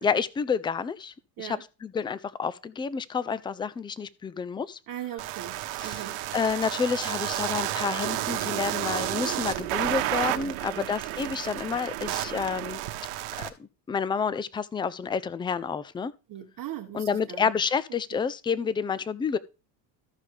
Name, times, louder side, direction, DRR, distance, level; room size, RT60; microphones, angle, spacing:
voice 1, 0.0-4.8 5.8-6.1 6.3-12.8 13.4-16.1 16.9-19.4, left 6 dB, 10° left, 0.4 m, -29 dB
voice 2, 4.9-6.1 10.3-10.9 16.3-17.5 18.1-18.2, right 12 dB, 45° right, 0.9 m, -40 dB
sound 1, 5.2-13.5, right 15 dB, 75° right, 1.1 m, -31 dB
14.0 x 5.5 x 3.3 m
supercardioid pair, 95°, 49 cm